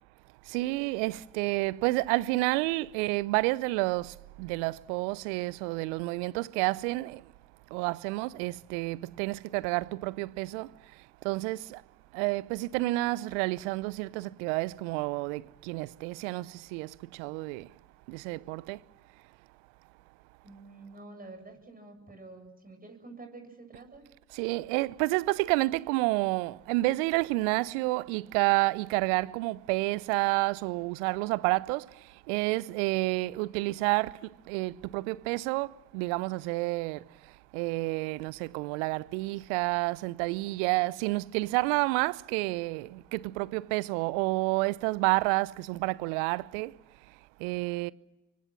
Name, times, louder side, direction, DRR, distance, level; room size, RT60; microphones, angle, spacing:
voice 1, 0.4-7.3 7.7-11.8 12.1-17.7 18.1-18.8 24.3-46.8 47.4-47.9, right 22 dB, 70° right, 0.7 m, -30 dB
voice 2, 20.4-24.0, right 3 dB, 25° right, 7.4 m, -48 dB
28.5 x 24.0 x 6.1 m
figure-of-eight pair, 50°, 36 cm